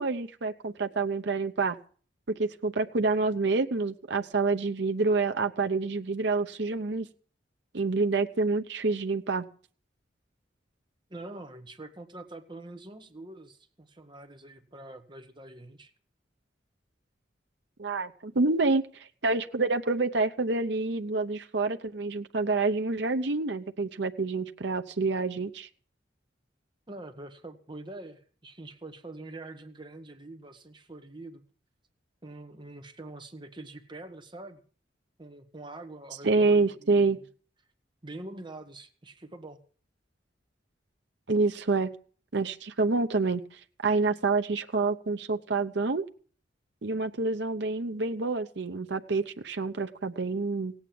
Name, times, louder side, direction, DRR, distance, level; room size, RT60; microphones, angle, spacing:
voice 1, 0.0-1.8 2.4-7.1 7.7-9.4 17.8-25.7 36.2-37.2 41.3-41.9 42.3-43.4 43.8-46.0 46.8-50.7, right 3 dB, 70° right, 6 dB, 0.8 m, -27 dB
voice 2, 11.1-15.9 26.9-31.4 32.2-34.6 35.2-37.2 38.0-39.6, right 2 dB, 25° right, 7 dB, 1.5 m, -45 dB
17.0 x 8.8 x 7.7 m, 0.44 s
head